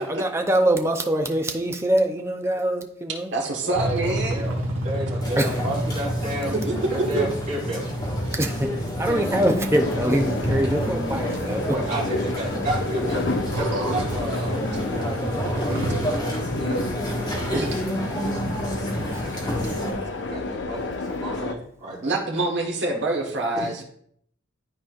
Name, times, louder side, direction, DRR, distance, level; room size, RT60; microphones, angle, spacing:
voice 1, 0.0-3.3 5.4-5.5 8.4-8.7 9.0-11.6 18.9-20.1, right 1 dB, 15° right, 4 dB, 0.6 m, -24 dB
voice 2, 1.9-2.2 3.3-4.4 6.5-7.2 13.5-14.0 17.5-17.7 22.0-23.8, right 2 dB, 65° right, 0 dB, 1.4 m, -26 dB
voice 3, 3.6-4.5 4.8-6.6 6.9-7.9 11.7-17.8 19.5-19.6 20.1-22.2 23.5-23.8, right 1 dB, 40° right, -5 dB, 2.8 m, -32 dB
sound 1, 3.7-16.2, right 1 dB, 85° right, 1.4 m, -32 dB
sound 2, 5.2-19.9, equal, 20° left, 1.5 m, -29 dB
sound 3, 9.7-21.5, left 3 dB, 65° left, 0.5 m, -32 dB
12.0 x 4.3 x 2.5 m, 0.66 s
head